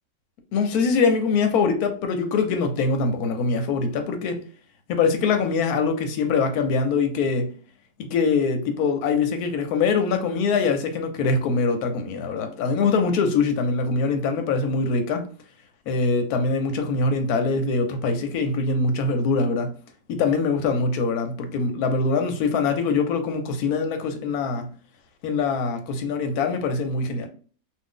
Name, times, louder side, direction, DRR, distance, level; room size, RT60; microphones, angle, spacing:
voice 1, 0.5-4.4 4.9-7.5 8.1-15.3 15.9-19.7 20.1-24.7 25.2-27.3, left 4 dB, 70° left, 1.0 m, -23 dB
2.5 x 2.4 x 3.6 m
omnidirectional pair, 1.8 m